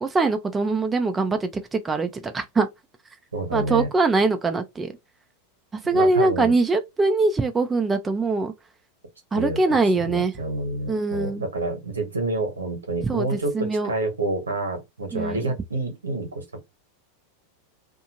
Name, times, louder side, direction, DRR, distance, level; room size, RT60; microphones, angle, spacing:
voice 1, 0.0-2.7 3.5-4.9 5.7-8.5 9.3-10.3 10.9-11.4 13.1-13.3 13.5-13.9 15.1-15.4, right 3 dB, 20° right, 0.5 m, -22 dB
voice 2, 3.3-3.9 5.9-6.5 9.3-9.6 9.9-16.4, right 2 dB, 90° right, 1.2 m, -28 dB
2.6 x 2.5 x 2.9 m
hypercardioid pair, 95°, 0 cm